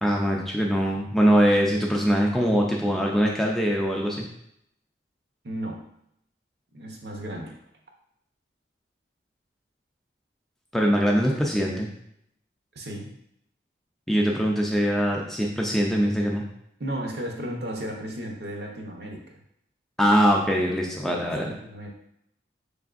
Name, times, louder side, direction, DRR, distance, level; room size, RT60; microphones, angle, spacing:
voice 1, 0.0-4.3 10.7-11.9 14.1-16.4 20.0-21.5, equal, ahead, -2 dB, 0.3 m, -22 dB
voice 2, 5.4-5.8 6.7-7.6 12.7-13.1 16.8-19.4 21.0-21.9, right 1 dB, 60° right, 1 dB, 0.7 m, -34 dB
4.6 x 3.4 x 2.4 m, 0.74 s
head